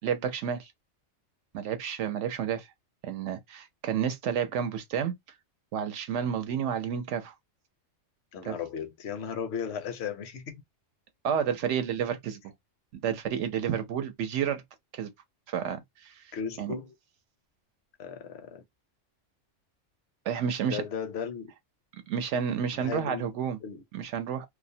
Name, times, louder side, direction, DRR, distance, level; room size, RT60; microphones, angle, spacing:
voice 1, 0.0-0.7 1.5-2.7 3.0-5.1 5.7-7.3 8.5-8.6 11.2-12.4 12.9-14.6 14.9-15.1 15.5-16.2 16.6-16.7 20.3-20.8 22.1-23.6 23.9-24.5, right 8 dB, 75° right, 0.9 m, -30 dB
voice 2, 8.3-10.6 16.3-16.9 18.0-18.6 20.6-21.5 22.7-23.4 23.6-23.8, left 7 dB, 65° left, 0.8 m, -36 dB
2.4 x 2.0 x 2.6 m
omnidirectional pair, 1.3 m